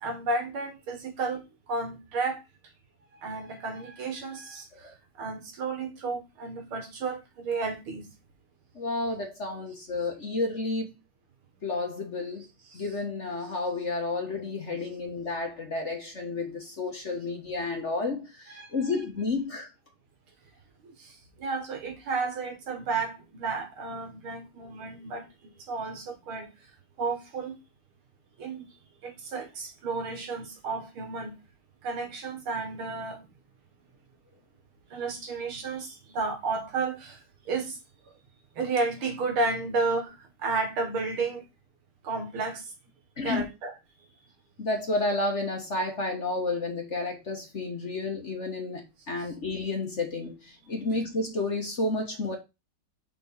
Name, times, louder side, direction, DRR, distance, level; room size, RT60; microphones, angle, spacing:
voice 1, 0.0-2.4 3.2-8.0 12.7-12.8 18.5-18.8 20.8-25.3 25.6-26.5 27.0-27.6 28.4-28.6 29.0-31.4 31.8-33.3 34.9-37.8 38.6-41.4 42.0-42.7 43.2-43.7, right 3 dB, 80° right, 2.5 m, -32 dB
voice 2, 8.7-10.9 11.6-12.4 12.7-19.7 43.2-43.4 44.6-52.4, left 3 dB, 40° left, 1.4 m, -31 dB
5.1 x 4.5 x 5.5 m
omnidirectional pair, 2.3 m